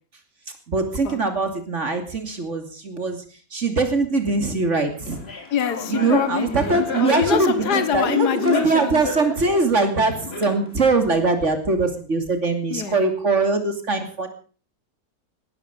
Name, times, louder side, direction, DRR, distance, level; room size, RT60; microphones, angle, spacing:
voice 1, 0.7-3.2 3.5-5.2 5.9-14.3, right 3 dB, 45° right, 7 dB, 3.1 m, -22 dB
Laughter, 5.1-10.9, left 2 dB, 40° left, 2.7 m, -31 dB
voice 2, 5.5-9.0 12.7-13.0, left 8 dB, 80° left, 13 dB, 1.9 m, -24 dB
18.0 x 13.5 x 5.3 m, 0.39 s
omnidirectional pair, 1.7 m